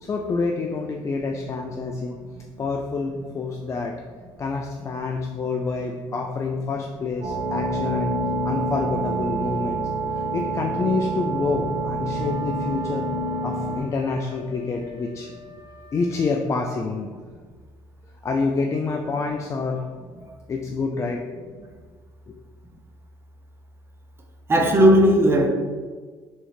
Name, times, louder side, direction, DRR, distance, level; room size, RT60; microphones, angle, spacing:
voice 1, 0.0-2.2 2.6-3.9 4.4-8.1 8.4-9.8 10.3-13.1 13.4-15.3 15.9-17.1 18.2-19.8 20.5-21.5, left 4 dB, 30° left, 0.3 m, -27 dB
sound 1, 7.2-13.8, right 2 dB, 55° right, 0.9 m, -27 dB
Wind instrument woodwind instrument, 12.1-16.6, left 6 dB, 70° left, 0.8 m, -47 dB
voice 2, 24.5-25.5, equal, 25° right, 0.6 m, -16 dB
3.5 x 3.2 x 3.2 m
supercardioid pair, 90°, 10 cm